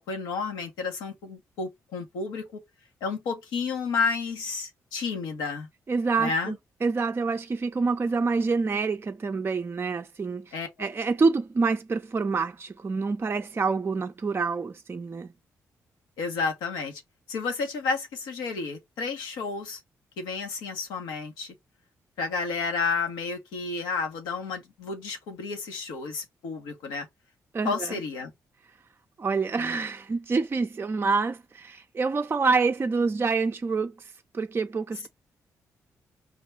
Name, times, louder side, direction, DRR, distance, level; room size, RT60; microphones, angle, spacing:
voice 1, 0.0-2.6 3.0-5.7 6.2-6.6 10.5-10.7 16.2-17.0 17.3-19.8 20.2-21.5 22.2-27.1 27.6-28.3, left 4 dB, 85° left, 1.0 m, -31 dB
voice 2, 5.9-6.5 6.8-15.3 27.5-28.0 29.2-35.1, right 4 dB, 35° right, 0.4 m, -27 dB
4.8 x 2.3 x 3.2 m
supercardioid pair, 50°, 7 cm